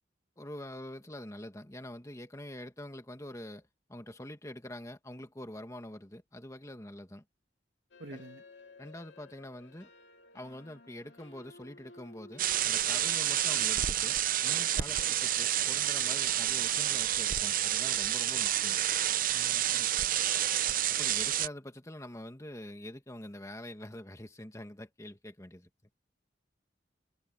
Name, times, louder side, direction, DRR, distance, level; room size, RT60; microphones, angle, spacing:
voice 1, 0.4-7.2 8.1-8.2 8.8-9.9 10.3-14.2 14.4-18.8 20.9-25.9, left 1 dB, 15° left, 1.9 m, -45 dB
sound 1, 7.9-13.1, left 2 dB, 75° left, 2.6 m, -55 dB
voice 2, 8.0-8.4 15.0-15.2 19.3-19.9, right 2 dB, 75° right, 2.0 m, -48 dB
sound 2, 12.4-21.5, right 11 dB, 50° right, 0.7 m, -29 dB
head